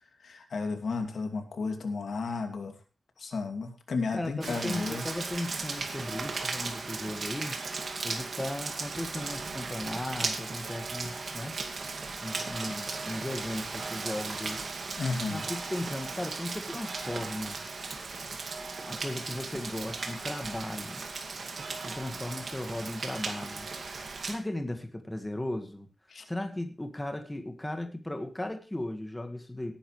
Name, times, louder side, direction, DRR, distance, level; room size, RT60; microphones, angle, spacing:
voice 1, 0.2-2.7 3.2-5.0 15.0-15.4 26.1-26.2, left 4 dB, 75° left, 5 dB, 2.5 m, -33 dB
voice 2, 4.1-7.6 8.0-11.5 12.2-14.6 15.3-17.7 18.8-21.1 21.9-23.7 24.2-25.9 26.2-29.7, left 1 dB, 10° left, 6 dB, 1.8 m, -36 dB
Rain, 4.4-24.4, right 4 dB, 55° right, 2.2 m, -37 dB
18.0 x 10.0 x 3.3 m, 0.34 s
wide cardioid pair, 150°, 0 cm